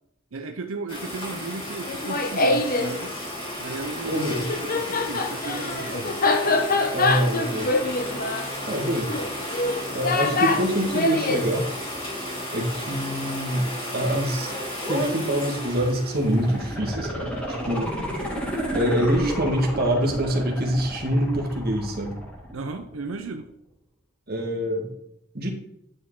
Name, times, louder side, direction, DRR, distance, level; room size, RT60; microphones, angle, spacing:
voice 1, 0.3-3.2 3.6-6.2 22.5-23.5, right 3 dB, 85° right, 5 dB, 0.7 m, -35 dB
sound 1, 0.9-16.7, equal, 25° left, 3.3 m, -33 dB
Laughter, 1.9-2.9 4.2-11.5, left 3 dB, 45° left, 0.9 m, -24 dB
voice 2, 4.1-4.5 6.9-7.7 8.7-9.1 9.9-11.7 12.5-14.5 14.9-17.4 17.7-17.9 18.7-22.1 24.3-24.9 25.3-25.5, equal, 50° right, 1 dB, 1.8 m, -25 dB
sound 2, 16.1-23.1 23.4-23.5, right 1 dB, 5° left, 2.3 m, -32 dB
10.0 x 6.3 x 3.8 m, 0.78 s
head